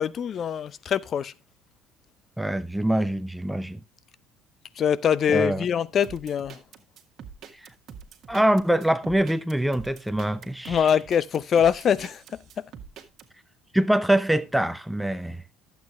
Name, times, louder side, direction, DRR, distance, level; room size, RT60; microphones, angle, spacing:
voice 1, 0.0-1.3 4.8-6.6 10.7-12.2, left 8 dB, 45° left, 0.6 m, -23 dB
voice 2, 2.4-3.8 5.3-5.7 7.6-7.7 8.3-10.9 13.7-15.4, right 1 dB, 5° right, 0.7 m, -24 dB
sound 1, 6.0-13.3, right 7 dB, 55° right, 1.7 m, -44 dB
11.5 x 8.2 x 3.1 m
hypercardioid pair, 70°, 0 cm